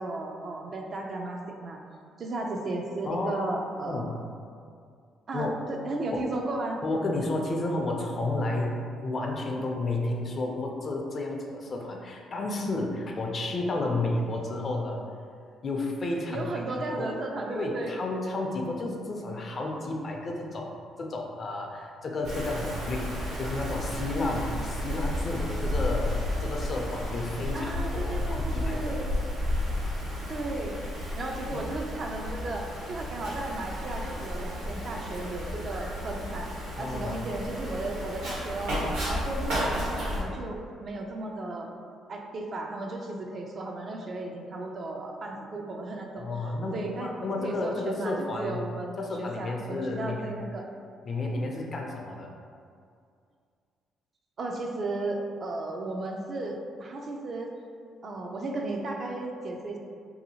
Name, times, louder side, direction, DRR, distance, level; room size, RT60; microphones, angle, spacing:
voice 1, 0.0-1.8 2.2-4.1 5.3-6.8 16.3-17.9 27.5-29.1 30.3-30.8 31.1-36.5 36.8-38.8 39.0-41.7 42.1-46.2 46.7-47.1 47.4-50.7 54.4-57.5 58.0-59.8, right 2 dB, 50° right, 1 dB, 0.4 m, -34 dB
voice 2, 3.0-3.6 3.8-4.2 5.3-5.5 6.1-6.2 6.8-15.0 15.6-16.5 17.0-17.1 17.6-23.1 23.4-29.0 31.5-31.6 36.8-37.2 46.2-46.7 47.0-48.6 49.0-50.3 51.0-52.3, left 2 dB, 45° left, 0 dB, 0.4 m, -31 dB
Wind, 22.2-40.2, left 1 dB, 85° right, 1.2 m, -32 dB
2.7 x 2.6 x 2.7 m, 2.3 s
cardioid pair, 80°, 0 cm